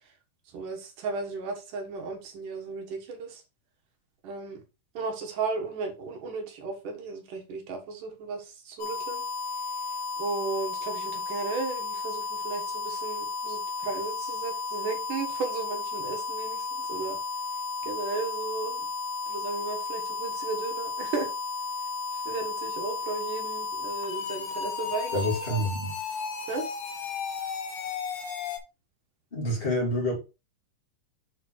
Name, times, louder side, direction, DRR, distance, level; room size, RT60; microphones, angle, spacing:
voice 1, 0.5-3.4 4.2-4.6 4.9-9.2 10.2-17.2 17.8-18.9 19.3-21.3 22.1-25.2 25.5-25.6 26.5-26.7, right 4 dB, 70° right, 3.0 m, -35 dB
sound 1, 8.8-28.6, left 4 dB, 80° left, 3.0 m, -34 dB
voice 2, 25.1-25.9 29.3-30.1, left 1 dB, 20° left, 2.1 m, -27 dB
7.4 x 4.2 x 4.4 m
omnidirectional pair, 4.0 m